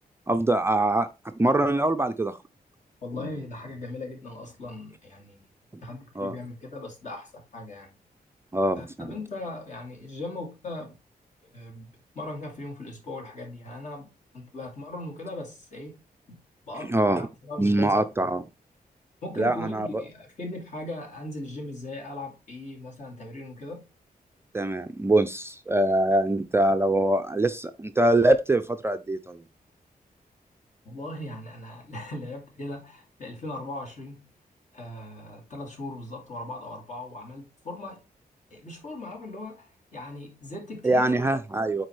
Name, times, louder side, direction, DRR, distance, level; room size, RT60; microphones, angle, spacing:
voice 1, 0.3-2.4 6.2-6.3 8.5-9.1 16.9-17.3 17.6-18.4 19.4-20.0 24.5-29.4 40.8-41.9, right 1 dB, 15° right, 0.4 m, -23 dB
voice 2, 3.0-5.5 5.8-7.9 8.8-11.0 11.4-14.1 14.3-16.0 16.3-16.4 16.6-18.0 19.2-23.9 30.8-34.3 34.7-38.0 38.5-41.4, left 2 dB, 50° left, 2.7 m, -39 dB
9.4 x 4.1 x 3.2 m
wide cardioid pair, 160°, 16 cm